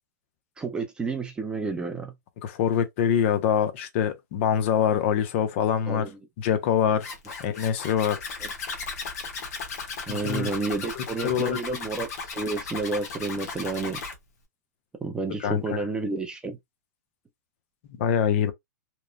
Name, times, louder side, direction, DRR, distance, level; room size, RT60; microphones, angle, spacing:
voice 1, 0.6-2.1 5.9-6.1 8.4-8.5 10.1-14.0 15.0-16.6, right 3 dB, 10° right, 0.4 m, -30 dB
voice 2, 2.4-6.0 6.4-7.1 7.4-8.2 10.1-10.5 11.0-11.6 15.4-15.8 18.0-18.5, left 8 dB, 45° left, 0.6 m, -24 dB
Zipper (clothing), 7.0-14.1, left 4 dB, 60° left, 1.0 m, -36 dB
3.0 x 2.0 x 2.3 m
hypercardioid pair, 145°, 9 cm